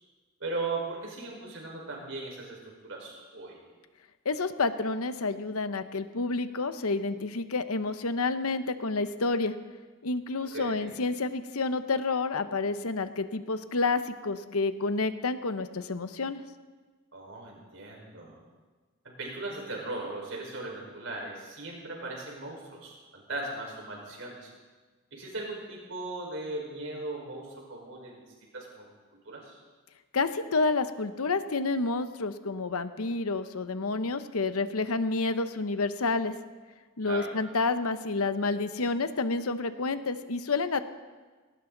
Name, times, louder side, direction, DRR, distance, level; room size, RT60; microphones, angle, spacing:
voice 1, 0.4-3.6 10.5-11.0 17.1-18.4 19.0-24.5 25.1-28.2 28.5-28.9 29.2-29.6 37.0-37.3, right 2 dB, 65° right, -1 dB, 4.9 m, -38 dB
voice 2, 4.2-9.5 10.0-16.4 30.1-36.3 37.0-40.8, left 3 dB, 90° left, 11 dB, 0.9 m, -29 dB
18.5 x 18.5 x 4.0 m, 1.3 s
head